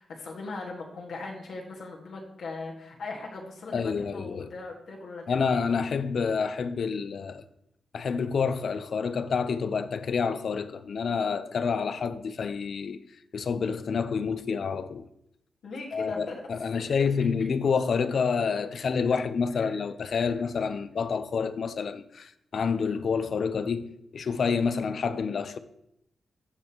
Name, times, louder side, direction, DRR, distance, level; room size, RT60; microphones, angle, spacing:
voice 1, 0.0-5.6 15.6-16.4 16.7-17.1 19.6-19.8 20.2-20.4, left 3 dB, 80° left, 1.7 m, -39 dB
voice 2, 3.7-4.5 5.3-7.4 7.9-13.0 13.3-15.1 15.9-25.6, left 5 dB, 60° left, 0.5 m, -28 dB
14.0 x 5.2 x 3.0 m
wide cardioid pair, 120°, 0 cm